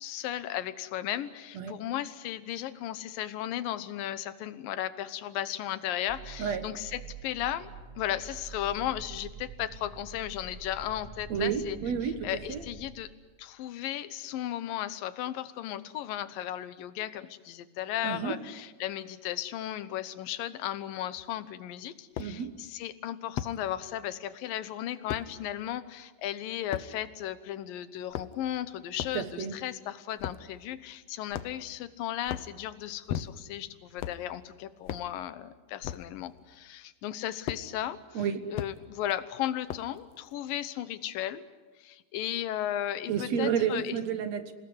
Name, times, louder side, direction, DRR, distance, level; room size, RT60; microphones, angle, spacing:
voice 1, 0.0-7.7 8.0-11.8 12.2-13.1 13.4-38.2 38.5-41.4 41.8-44.0, left 12 dB, 85° left, 14 dB, 2.8 m, -35 dB
sound 1, 6.1-12.9, right 5 dB, 10° right, 3.6 m, -46 dB
voice 2, 11.3-12.6 18.0-18.4 22.2-22.6 29.1-29.6 38.1-38.5 43.1-44.5, right 7 dB, 60° right, 9 dB, 2.3 m, -31 dB
sound 2, 21.2-21.3 22.2-22.3 23.4-23.6 25.1-25.3 26.7-26.9 28.0-28.5 29.0-29.2 30.2-30.5 31.3-31.7 32.2-32.5 33.1-33.6 34.0-34.2 34.9-35.1 35.8-36.1 37.5-37.6 38.5-38.7 39.7-40.0, left 11 dB, 65° left, 1.7 m, -36 dB
28.0 x 18.5 x 9.6 m, 1.3 s
omnidirectional pair, 3.9 m